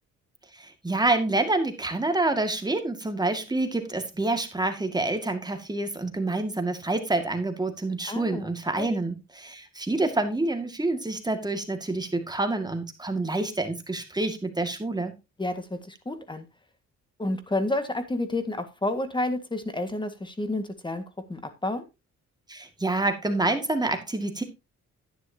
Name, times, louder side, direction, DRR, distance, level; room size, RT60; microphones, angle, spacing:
voice 1, 0.5-15.1 22.5-24.4, right 2 dB, 15° right, 6 dB, 2.1 m, -27 dB
voice 2, 8.1-8.5 8.8-9.0 15.4-16.4 17.2-21.0 21.3-21.9, left 2 dB, 15° left, 9 dB, 1.8 m, -30 dB
11.0 x 9.6 x 2.8 m, 0.25 s
cardioid pair, 90°, 30 cm